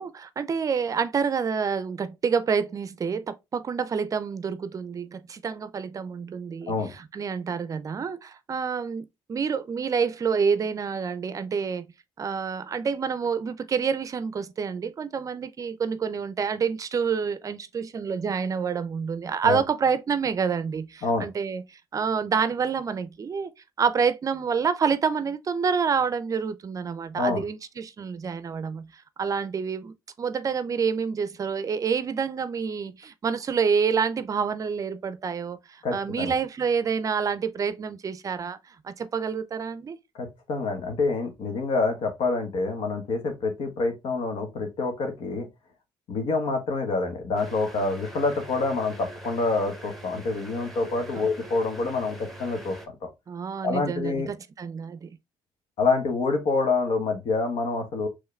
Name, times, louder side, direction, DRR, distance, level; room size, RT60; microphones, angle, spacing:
voice 1, 0.0-11.9 12.2-23.5 23.8-40.0 51.1-51.3 53.3-55.1, right 6 dB, 35° right, 0.5 m, -28 dB
voice 2, 35.8-36.3 40.2-45.5 46.1-53.1 53.6-54.3 55.8-58.1, left 3 dB, 75° left, 1.3 m, -27 dB
sound 1, 47.4-52.9, right 1 dB, ahead, 1.0 m, -43 dB
4.7 x 3.0 x 3.2 m
cardioid pair, 110°, 9 cm